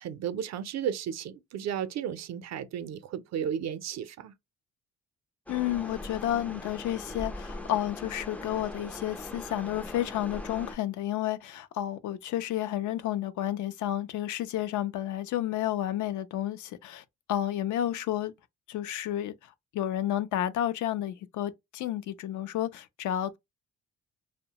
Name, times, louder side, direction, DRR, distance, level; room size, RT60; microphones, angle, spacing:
voice 1, 0.0-4.3, right 9 dB, 60° right, 0.5 m, -34 dB
voice 2, 5.5-18.3 18.7-19.3 19.7-23.4, left 12 dB, 75° left, 0.5 m, -31 dB
sound 1, 5.5-10.8, left 1 dB, 5° left, 0.3 m, -41 dB
2.7 x 2.1 x 2.8 m
cardioid pair, 90°, 30 cm